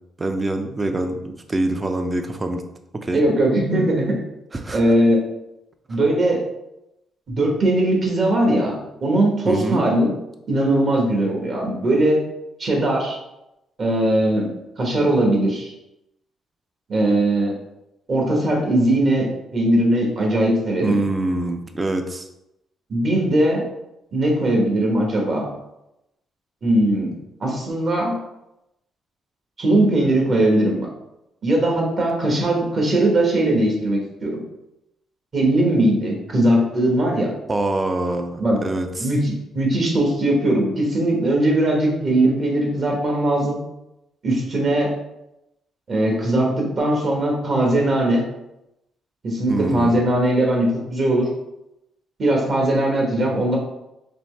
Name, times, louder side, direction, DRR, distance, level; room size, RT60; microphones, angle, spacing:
voice 1, 0.2-2.6 2.9-3.2 4.5-4.8 9.5-9.8 20.8-22.3 37.5-39.1 49.5-50.0, right 2 dB, 25° right, 6 dB, 0.5 m, -25 dB
voice 2, 3.1-4.2 4.7-5.2 5.9-6.4 7.3-8.7 9.0-10.1 10.5-12.2 12.6-13.2 13.8-14.5 14.8-15.7 16.9-17.5 18.1-21.0 22.9-23.6 24.1-25.5 26.6-27.1 27.4-28.2 29.6-30.9 31.4-34.4 35.3-37.3 38.4-38.6 39.0-43.6 44.2-44.9 45.9-48.3 49.2-51.3 52.2-53.6, right 1 dB, 45° right, -1 dB, 1.4 m, -19 dB
4.3 x 3.1 x 3.3 m, 0.88 s
cardioid pair, 90°, 0 cm